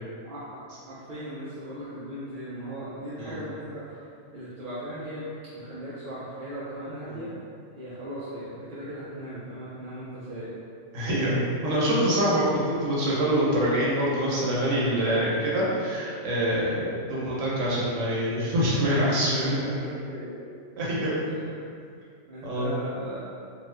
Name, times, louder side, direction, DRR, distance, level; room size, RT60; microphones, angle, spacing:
voice 1, 0.9-7.3 7.8-10.6 16.8-17.0 19.6-20.3 21.3-21.6 22.3-23.2, right 1 dB, 55° right, -10 dB, 0.6 m, -38 dB
voice 2, 10.9-19.7 20.8-21.1 22.4-22.7, equal, 90° right, -6 dB, 1.1 m, -25 dB
2.6 x 2.3 x 3.2 m, 2.3 s
omnidirectional pair, 1.2 m